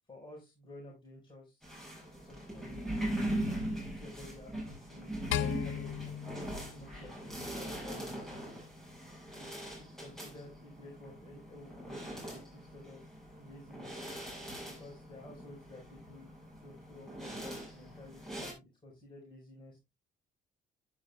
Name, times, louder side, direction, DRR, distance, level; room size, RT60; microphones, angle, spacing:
voice 1, 0.1-3.1 3.6-8.2 9.3-9.5 9.8-14.0 14.6-19.8, left 1 dB, 25° left, -2 dB, 5.0 m, -53 dB
sound 1, 1.6-18.5, right 1 dB, ahead, 7.0 m, -41 dB
sound 2, 5.3-7.7, left 11 dB, 80° left, 0.7 m, -37 dB
10.5 x 10.5 x 2.4 m, 0.23 s
cardioid pair, 90°, 20 cm